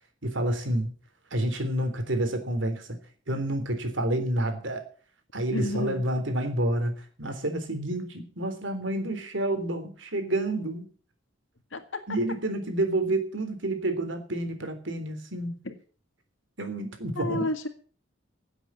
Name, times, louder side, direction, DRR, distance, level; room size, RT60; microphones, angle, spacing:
voice 1, 0.2-0.9 1.3-3.0 3.3-4.8 5.3-10.9 12.1-15.6 16.6-17.5, right 1 dB, 70° right, 7 dB, 3.6 m, -29 dB
voice 2, 5.5-6.0 11.7-11.8 15.7-15.8 17.2-17.7, left 2 dB, 80° left, 7 dB, 1.9 m, -30 dB
16.5 x 8.1 x 7.3 m, 0.42 s
head